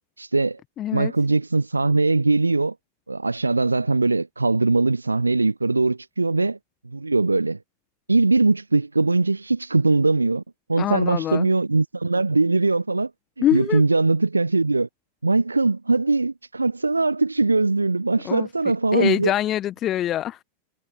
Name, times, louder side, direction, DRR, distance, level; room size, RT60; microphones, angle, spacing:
voice 1, 0.2-0.6 0.9-2.7 3.1-6.6 6.8-7.6 8.1-10.4 10.7-13.1 13.5-14.9 15.2-19.3, right 3 dB, 80° right, 0.4 m, -21 dB
voice 2, 0.8-1.1 10.8-11.5 13.4-13.8 18.2-18.5 18.9-20.4, left 12 dB, 30° left, 1.3 m, -24 dB
figure-of-eight pair, 90°, 0 cm